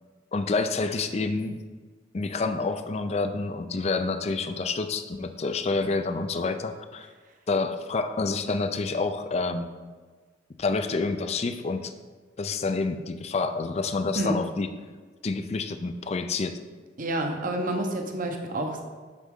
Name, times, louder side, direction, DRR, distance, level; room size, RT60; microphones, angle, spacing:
voice 1, 0.3-1.6 2.1-7.1 7.5-9.7 10.6-11.9 12.4-14.7 15.2-16.6, left 3 dB, 35° left, 9 dB, 0.4 m, -28 dB
voice 2, 17.0-18.8, right 1 dB, 45° right, 3 dB, 0.9 m, -28 dB
7.8 x 6.2 x 3.7 m, 1.4 s
head